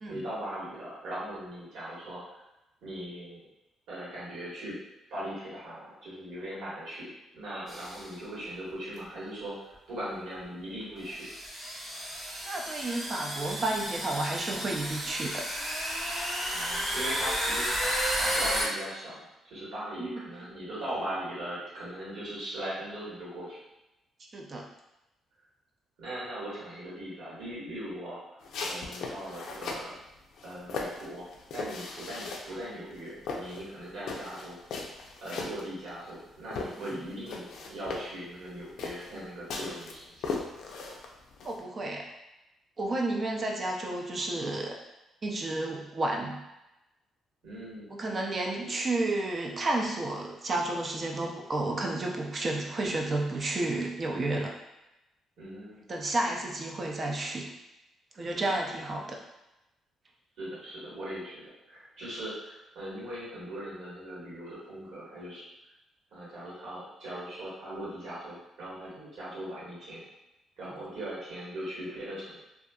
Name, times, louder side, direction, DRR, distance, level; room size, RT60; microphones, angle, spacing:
voice 1, 0.1-2.4 2.8-3.4 3.9-4.8 5.1-7.1 7.3-11.2 16.5-19.2 19.4-23.6 26.0-28.2 28.6-29.9 30.4-31.2 31.5-34.6 35.2-40.3 47.4-47.9 55.4-55.8 58.2-58.4 60.4-65.5 66.1-70.0 70.6-72.3, right 1 dB, 75° right, -8 dB, 1.3 m, -39 dB
sound 1, 7.7-8.0 9.0-9.1 10.2-10.3 11.1-18.7, equal, 20° right, 0.8 m, -32 dB
voice 2, 12.4-15.4 20.0-20.3 24.3-24.7 36.8-37.0 41.4-42.1 42.8-44.8 45.2-46.4 47.9-54.5 55.9-57.5 58.2-59.2 70.6-70.8, right 2 dB, 40° right, 1 dB, 0.4 m, -31 dB
sound 2, 28.4-29.9 30.4-32.6 32.9-36.2 36.5-41.6, left 4 dB, 75° left, 0.4 m, -38 dB
2.6 x 2.3 x 2.3 m, 0.94 s
cardioid pair, 90°, 0 cm